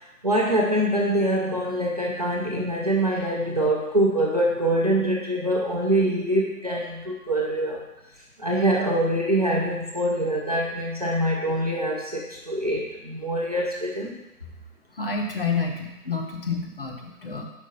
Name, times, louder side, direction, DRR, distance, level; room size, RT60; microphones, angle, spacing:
voice 1, 0.2-7.8 8.4-14.2, right 1 dB, 25° right, -3 dB, 0.7 m, -24 dB
voice 2, 15.0-17.4, left 4 dB, 40° left, 2 dB, 0.8 m, -29 dB
5.2 x 5.2 x 5.4 m, 0.97 s
hypercardioid pair, 165°, 45 cm